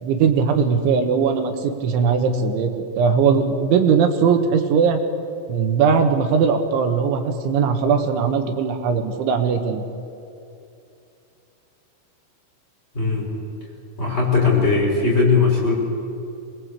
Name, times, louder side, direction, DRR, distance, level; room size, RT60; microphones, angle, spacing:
voice 1, 0.0-2.7 3.0-5.0 5.5-9.8, right 6 dB, 70° right, 6 dB, 3.7 m, -19 dB
voice 2, 14.0-15.7, left 4 dB, 10° left, -3 dB, 5.4 m, -18 dB
25.0 x 21.0 x 8.3 m, 2.6 s
omnidirectional pair, 5.9 m